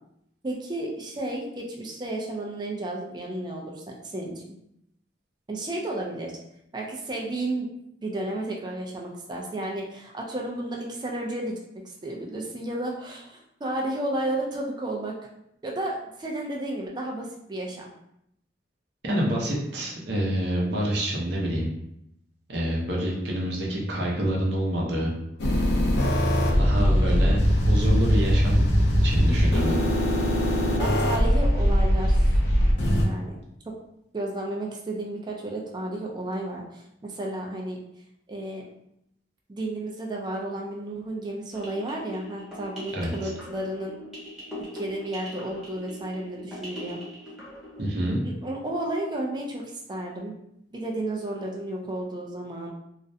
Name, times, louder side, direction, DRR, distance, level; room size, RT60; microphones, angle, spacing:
voice 1, 0.4-4.4 5.5-6.3 6.7-7.7 8.0-11.5 11.8-15.1 15.6-17.9 26.7-27.2 30.8-32.3 33.0-33.4 33.7-33.8 34.1-37.8 38.3-38.7 39.5-44.0 44.7-47.0 48.2-50.3 50.7-52.7, right 1 dB, 25° right, -1 dB, 0.4 m, -32 dB
voice 2, 19.0-21.7 22.5-25.1 26.6-28.7 29.0-29.8 42.9-43.3 47.8-48.2, equal, 70° right, -2 dB, 0.7 m, -27 dB
sound 1, 25.4-33.1, equal, 70° left, 0.5 m, -21 dB
sound 2, 41.5-47.8, left 1 dB, 5° right, 0.8 m, -41 dB
2.4 x 2.1 x 2.6 m, 0.77 s
head